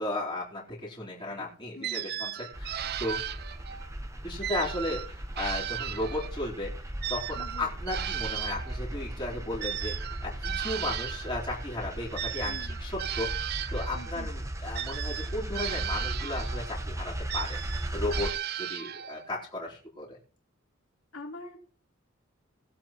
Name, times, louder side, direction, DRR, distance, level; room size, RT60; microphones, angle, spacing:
voice 1, 0.0-3.2 4.2-6.7 7.1-17.6 17.9-18.3 18.6-20.2, left 1 dB, 25° left, -5 dB, 3.8 m, -35 dB
voice 2, 1.7-2.1 7.3-7.7 12.4-12.8 13.9-14.3 21.1-21.6, left 2 dB, 80° left, -3 dB, 3.5 m, -44 dB
sound 1, 1.8-3.9 4.4-6.5 7.0-11.4 12.2-14.1 14.7-16.7 17.3-19.3, right 11 dB, 50° right, 0.4 m, -36 dB
sound 2, 2.5-18.3, right 1 dB, 15° right, 0.9 m, -37 dB
20.5 x 7.9 x 3.0 m, 0.41 s
head